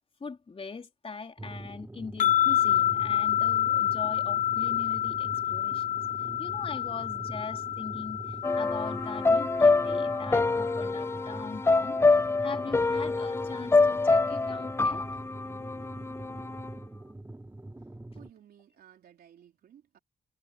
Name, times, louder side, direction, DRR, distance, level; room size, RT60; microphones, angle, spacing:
voice 1, 0.2-6.0 6.4-12.0 12.4-15.1, left 4 dB, 35° left, 3.8 m, -41 dB
sound 1, 1.4-18.3, right 2 dB, 15° right, 3.6 m, -44 dB
sound 2, 2.2-11.5, left 12 dB, 55° left, 0.8 m, -29 dB
sound 3, 8.4-16.7, left 3 dB, 15° left, 0.4 m, -26 dB
voice 2, 18.1-20.0, right 10 dB, 80° right, 3.7 m, -56 dB
cardioid pair, 90°, 16 cm